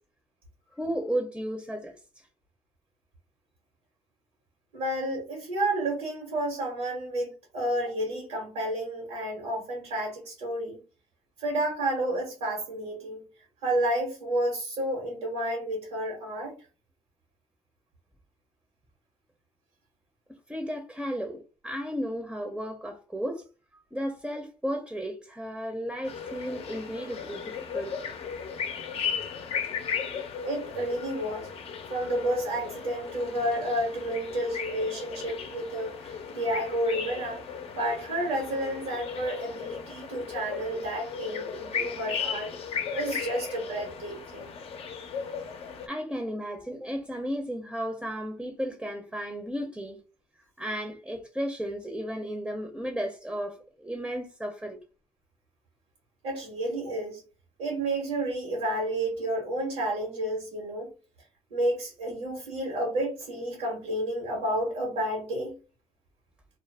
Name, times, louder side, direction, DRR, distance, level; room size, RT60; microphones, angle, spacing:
voice 1, 0.8-2.0 20.5-23.4 23.9-27.4 27.7-27.9 45.9-50.0 50.6-54.8, equal, 5° right, 0.6 m, -34 dB
voice 2, 4.7-10.8 11.4-13.2 13.6-16.5 30.4-31.5 31.9-37.4 37.7-42.5 42.9-44.5 56.2-57.2 57.6-60.9 61.5-65.5, right 1 dB, 85° right, 1.2 m, -30 dB
sound 1, 26.0-45.9, left 6 dB, 55° left, 0.6 m, -36 dB
2.4 x 2.0 x 3.2 m
supercardioid pair, 65°, 11 cm